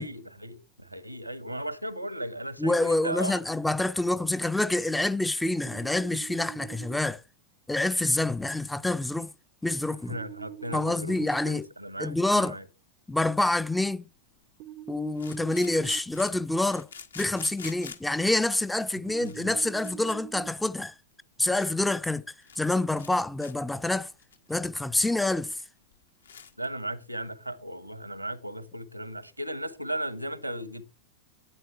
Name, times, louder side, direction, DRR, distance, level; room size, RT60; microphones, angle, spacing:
voice 1, 0.0-3.4 10.1-12.6 19.2-19.6 26.6-31.0, right 1 dB, 90° right, 1.3 m, -36 dB
voice 2, 2.6-7.2 7.7-9.3 9.6-10.2 10.7-11.7 12.0-12.6 13.1-14.0 14.9-16.9 17.2-21.0 21.4-24.1 24.5-25.6, left 2 dB, 5° left, 0.5 m, -27 dB
sound 1, 5.7-7.0 10.1-11.5 14.6-16.0 19.1-20.5, right 13 dB, 45° right, 0.5 m, -44 dB
sound 2, 15.2-18.2 18.9-19.0 19.2-20.2 20.4-20.6 21.1-21.2 21.5-21.7 22.0-22.1 22.3-22.7 23.0-23.1 23.4-23.5 24.0-25.2 25.5-25.6 25.9-26.0 26.2-26.7, left 6 dB, 70° left, 1.4 m, -46 dB
12.0 x 9.4 x 3.4 m
figure-of-eight pair, 90°, 0 cm